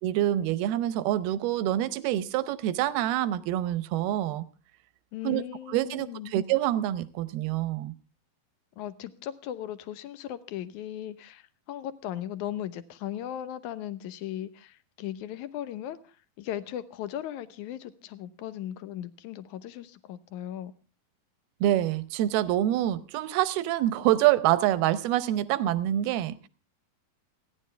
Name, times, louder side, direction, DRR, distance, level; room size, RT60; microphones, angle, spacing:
voice 1, 0.0-4.5 5.2-5.4 5.7-7.9 21.6-26.5, right 13 dB, 85° right, 2.8 m, -26 dB
voice 2, 5.1-6.3 8.8-20.7, left 11 dB, 70° left, 2.0 m, -37 dB
29.5 x 11.0 x 3.4 m
omnidirectional pair, 4.4 m